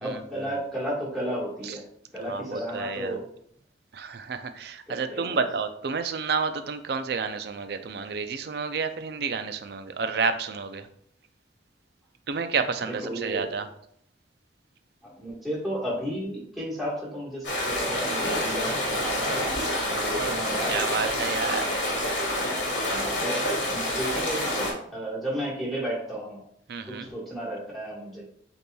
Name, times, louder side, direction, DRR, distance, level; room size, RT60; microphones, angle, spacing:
voice 1, 0.0-1.8 2.1-3.2 4.9-5.4 13.0-13.5 15.0-20.9 22.9-23.4 23.7-26.4 26.9-28.2, equal, ahead, -6 dB, 1.4 m, -33 dB
voice 2, 2.2-3.2 3.9-10.9 12.3-13.7 19.8-20.4 20.7-21.7 26.7-27.1, right 5 dB, 60° right, 9 dB, 0.4 m, -30 dB
sound 1, 17.4-24.7, left 1 dB, 85° left, 1.7 m, -27 dB
8.0 x 2.9 x 2.3 m, 0.68 s
head